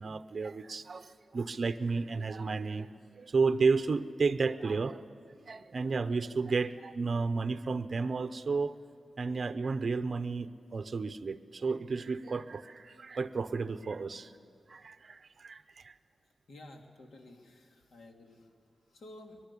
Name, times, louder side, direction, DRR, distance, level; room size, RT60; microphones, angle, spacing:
voice 1, 0.0-2.9 3.1-5.0 5.5-8.8 9.2-14.3 14.7-15.9, right 4 dB, 45° right, 11 dB, 0.8 m, -32 dB
voice 2, 16.1-19.4, left 1 dB, 70° left, 2 dB, 2.6 m, -53 dB
23.0 x 21.5 x 8.4 m, 2.3 s
wide cardioid pair, 160°, 0 cm